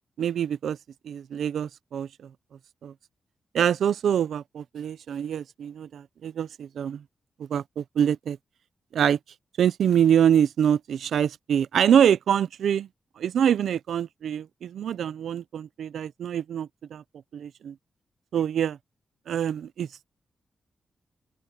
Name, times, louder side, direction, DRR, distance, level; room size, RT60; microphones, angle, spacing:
voice 1, 0.2-0.8 1.0-2.1 2.8-2.9 3.5-7.0 7.4-8.4 8.9-9.2 9.6-12.9 13.2-17.0 17.3-17.7 18.3-18.8 19.3-19.9, right 9 dB, 90° right, 0.5 m, -25 dB
open air
cardioid pair, 80°, 0 cm